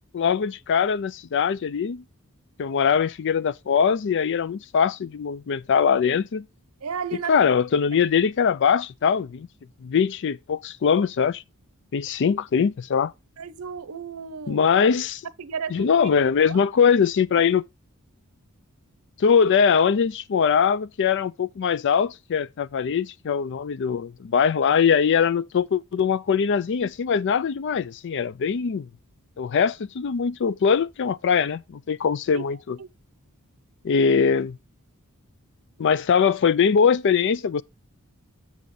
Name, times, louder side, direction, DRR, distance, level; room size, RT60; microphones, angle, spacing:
voice 1, 0.1-2.0 2.6-6.5 7.3-9.5 9.8-11.4 11.9-13.1 14.5-15.2 15.7-17.6 19.2-28.9 29.4-32.8 33.8-34.6 35.8-37.6, left 6 dB, 55° left, 0.4 m, -22 dB
voice 2, 6.8-7.5 7.9-8.0 13.4-14.6 15.4-16.1 16.4-16.6 32.3-32.5 32.8-32.9, right 6 dB, 80° right, 0.7 m, -34 dB
7.3 x 6.9 x 3.7 m
head